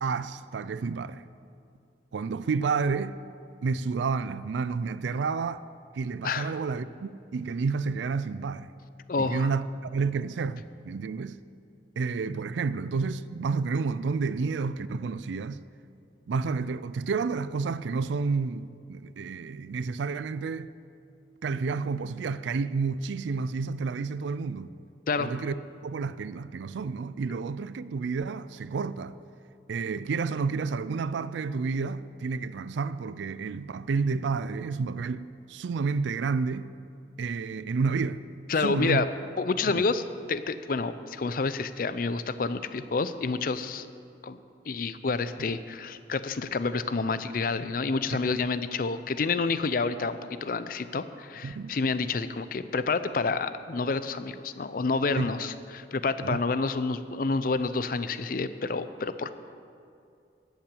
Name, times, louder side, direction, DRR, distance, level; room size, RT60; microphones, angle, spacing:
voice 1, 0.0-1.2 2.1-3.2 3.6-5.6 5.9-8.7 9.2-11.4 12.0-15.6 16.3-20.7 21.4-24.7 25.2-25.5 25.8-29.1 29.7-36.7 37.2-38.2 38.6-39.0 39.7-39.8 51.4-51.8 55.2-55.3 56.2-56.4, right 4 dB, 75° right, 0.4 m, -30 dB
voice 2, 9.1-9.5 25.1-25.4 38.5-39.1 39.4-40.0 40.3-43.9 44.2-44.4 44.7-59.3, left 4 dB, 50° left, 0.5 m, -29 dB
13.0 x 5.9 x 8.4 m
head